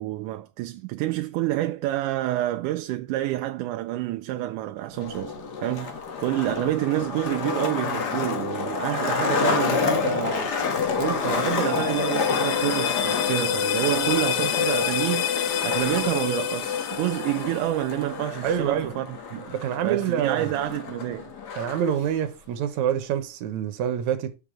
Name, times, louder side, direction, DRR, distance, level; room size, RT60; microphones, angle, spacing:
voice 1, 0.0-19.4 19.8-21.3, right 15 dB, 85° right, 2.1 m, -28 dB
Skateboard, 4.9-21.9, left 5 dB, 45° left, 1.4 m, -29 dB
sound 1, 10.8-17.9, left 9 dB, 75° left, 2.2 m, -28 dB
voice 2, 18.4-18.9 19.3-20.5 21.5-24.4, right 9 dB, 70° right, 2.5 m, -26 dB
6.8 x 5.9 x 7.4 m
omnidirectional pair, 3.5 m